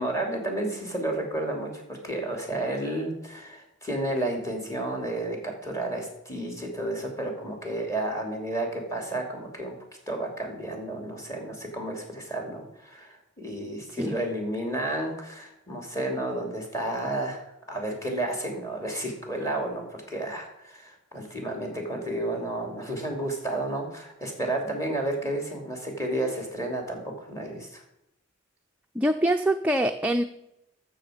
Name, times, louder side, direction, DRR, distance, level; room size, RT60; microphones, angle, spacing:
voice 1, 0.0-9.7 10.1-27.8, right 1 dB, 15° left, 2 dB, 2.7 m, -31 dB
voice 2, 28.9-30.2, right 1 dB, 5° right, 4 dB, 0.4 m, -24 dB
14.0 x 6.5 x 5.0 m, 0.86 s
head